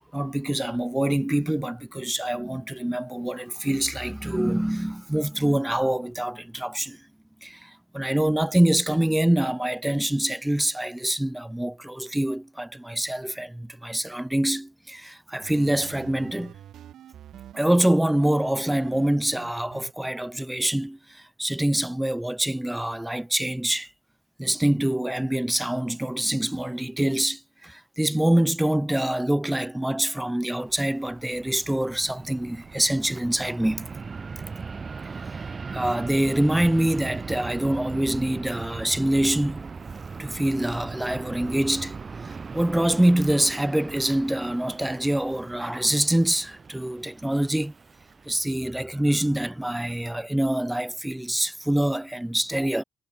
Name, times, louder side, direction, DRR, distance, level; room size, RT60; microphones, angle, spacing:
voice 1, 0.0-7.0 7.4-16.6 17.5-23.9 24.4-33.9 35.7-39.7 40.2-47.7 48.3-52.8, right 1 dB, 10° right, 0.3 m, -25 dB
sound 1, 15.4-17.7 18.1-19.9, right 11 dB, 80° right, 0.5 m, -46 dB
Fixed-wing aircraft airplane, 30.6-48.4, right 5 dB, 40° right, 0.9 m, -39 dB
cardioid pair, 65°, 0 cm